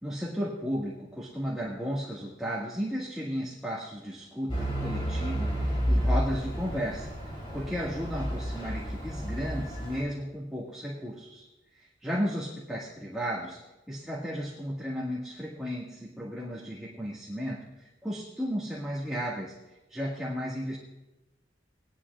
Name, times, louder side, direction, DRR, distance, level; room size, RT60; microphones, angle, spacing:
voice 1, 0.0-11.5 11.7-13.6 13.9-19.5 19.9-20.8, equal, 5° right, -6 dB, 1.7 m, -34 dB
Truck / Idling, 4.5-10.0, equal, 30° left, 3.4 m, -31 dB
19.5 x 11.5 x 2.4 m, 0.98 s
head